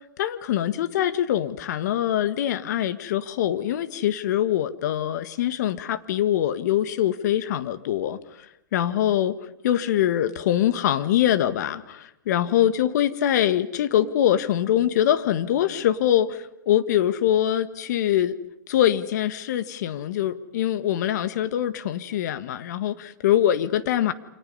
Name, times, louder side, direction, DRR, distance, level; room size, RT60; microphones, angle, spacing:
voice 1, 0.2-8.2 8.7-9.4 9.6-18.3 18.7-24.1, left 11 dB, 60° left, 12 dB, 1.7 m, -23 dB
29.0 x 26.5 x 5.5 m, 0.82 s
hypercardioid pair, 115°, 10 cm